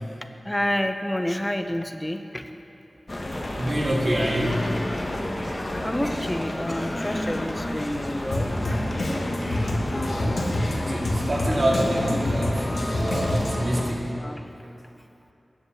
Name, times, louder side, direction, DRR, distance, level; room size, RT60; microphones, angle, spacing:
voice 1, 0.4-2.5 5.8-8.5 14.1-14.5, left 1 dB, 15° left, 7 dB, 0.7 m, -29 dB
sound 1, 3.1-13.9, left 1 dB, 40° left, 1.2 m, -30 dB
voice 2, 3.3-4.8 10.1-14.1 14.6-14.7, equal, 55° right, -3 dB, 2.1 m, -27 dB
Drum kit, 8.3-13.8, left 1 dB, 80° left, 1.3 m, -28 dB
9.9 x 7.5 x 6.8 m, 2.8 s
cardioid pair, 45°, 0 cm